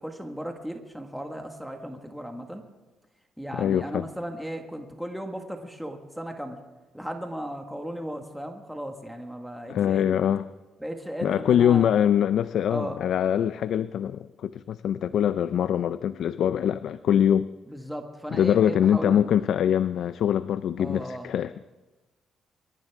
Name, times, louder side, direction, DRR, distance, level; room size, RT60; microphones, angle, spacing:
voice 1, 0.0-2.6 3.4-6.6 6.9-10.1 10.8-12.0 12.7-13.0 17.7-19.3 20.8-21.3, equal, ahead, 3 dB, 1.6 m, -36 dB
voice 2, 3.5-4.1 9.7-10.5 11.2-17.5 18.3-21.5, left 9 dB, 70° left, 14 dB, 0.4 m, -23 dB
24.5 x 13.5 x 3.6 m, 1.2 s
cardioid pair, 90°, 0 cm